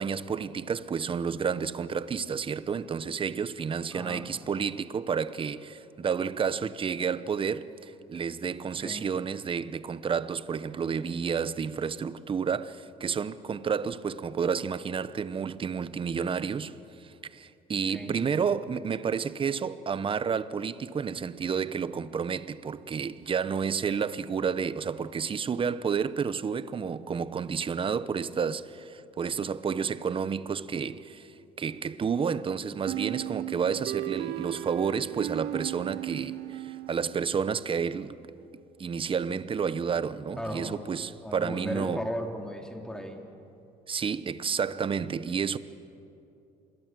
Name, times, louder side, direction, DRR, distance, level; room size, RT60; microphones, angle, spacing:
voice 1, 0.0-38.2 38.8-42.0 43.9-45.6, right 6 dB, 30° right, 0.9 m, -30 dB
voice 2, 3.9-4.3 8.8-9.1 17.9-18.2 40.4-40.8 41.2-43.2, equal, 5° left, 2.9 m, -36 dB
sound 1, 32.9-37.5, right 15 dB, 75° right, 0.5 m, -36 dB
26.5 x 21.5 x 7.7 m
cardioid pair, 110°, 17 cm